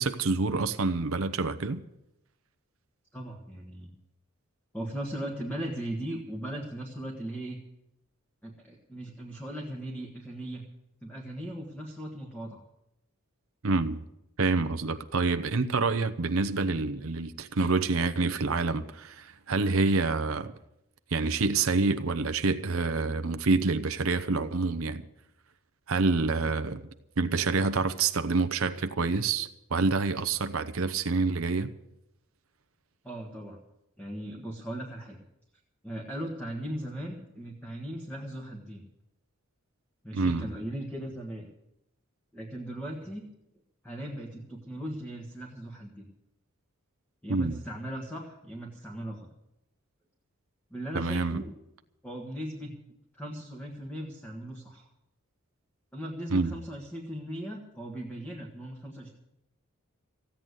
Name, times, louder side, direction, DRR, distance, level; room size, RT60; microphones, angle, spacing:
voice 1, 0.0-1.8 13.6-14.0 14.4-20.5 21.1-25.0 25.9-26.8 27.2-31.7 40.1-40.5 47.3-47.6 50.9-51.4 56.3-56.5, right 3 dB, 80° right, 0.8 m, -27 dB
voice 2, 3.1-3.9 4.7-7.6 8.4-10.6 11.0-12.6 26.4-26.5 33.0-33.6 34.0-35.2 35.8-38.9 40.0-41.5 42.3-43.2 43.8-46.1 47.2-49.3 50.7-51.5 52.0-52.7 53.1-54.9 55.9-59.1, right 1 dB, 5° left, 1.6 m, -38 dB
15.5 x 9.1 x 8.1 m
head